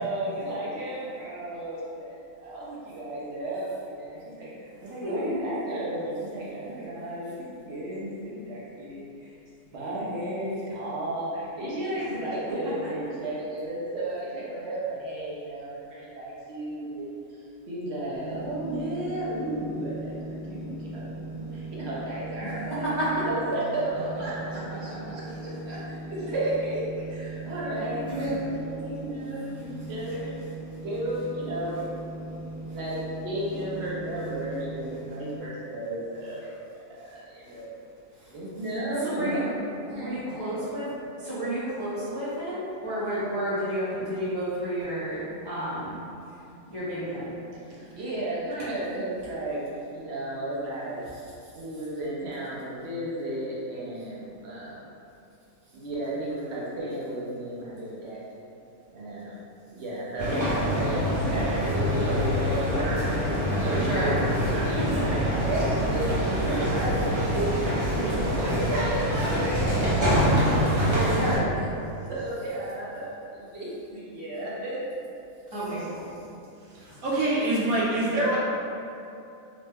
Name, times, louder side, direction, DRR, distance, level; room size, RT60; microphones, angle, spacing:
voice 1, 0.0-9.3 9.7-17.1 17.7-22.9 23.1-30.4 30.8-31.8 32.6-37.7 38.3-39.4 39.9-40.6 47.7-51.0 51.6-54.8 55.7-58.4 58.9-59.4 59.7-61.0 61.2-64.3 64.5-71.2 71.6-74.9, right 1 dB, 55° right, -7 dB, 0.8 m, -33 dB
voice 2, 5.0-5.4 22.4-23.3 28.1-28.4 39.0-39.5 39.9-40.9 41.2-46.0 46.7-47.3 63.6-64.3 64.8-65.2 70.9-71.6 75.5-76.1 76.9-77.0, right 1 dB, 40° left, -12 dB, 0.3 m, -30 dB
sound 1, 18.1-35.4, right 2 dB, 75° left, 1.0 m, -39 dB
sound 2, 60.2-71.4, equal, 35° right, 0.5 m, -25 dB
voice 3, 77.0-78.4, right 1 dB, 75° right, -6 dB, 1.1 m, -24 dB
2.9 x 2.1 x 3.4 m, 2.6 s
omnidirectional pair, 1.5 m